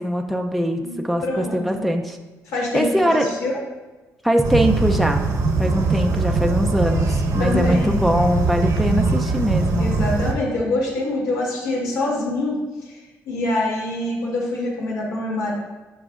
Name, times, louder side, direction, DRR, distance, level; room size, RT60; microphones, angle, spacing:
voice 1, 0.0-2.2 2.7-3.3 4.2-5.2 5.6-9.9, equal, ahead, 3 dB, 0.4 m, -22 dB
voice 2, 1.2-1.9 2.5-3.6 7.4-8.0 9.8-13.0 13.3-15.5, left 2 dB, 85° left, -4 dB, 2.4 m, -25 dB
sound 1, 4.4-10.3, right 3 dB, 70° right, 0.9 m, -21 dB
12.0 x 4.6 x 2.4 m, 1.2 s
cardioid pair, 130°, 6 cm